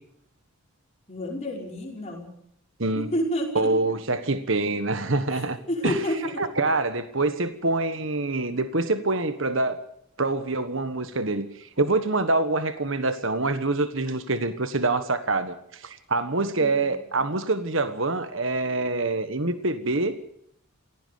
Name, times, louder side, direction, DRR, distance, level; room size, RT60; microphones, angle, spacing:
voice 1, 1.1-2.3 2.9-3.7 5.3-5.4 5.7-6.4 16.6-17.0, equal, 30° left, 0 dB, 5.3 m, -30 dB
voice 2, 3.5-5.6 5.8-6.0 6.4-9.8 10.2-20.2, right 2 dB, 60° right, 10 dB, 1.4 m, -25 dB
17.5 x 16.5 x 9.5 m, 0.70 s
head